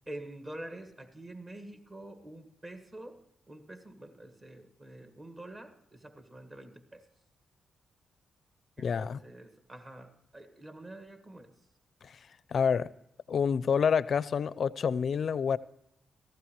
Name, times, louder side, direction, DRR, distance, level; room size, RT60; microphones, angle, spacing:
voice 1, 0.1-7.1 8.8-11.7, right 1 dB, 35° right, 1.8 m, -47 dB
voice 2, 8.8-9.2 12.0-12.1 12.5-12.9 13.3-15.6, left 6 dB, 60° left, 0.5 m, -28 dB
17.5 x 15.0 x 3.1 m
cardioid pair, 65°, 0 cm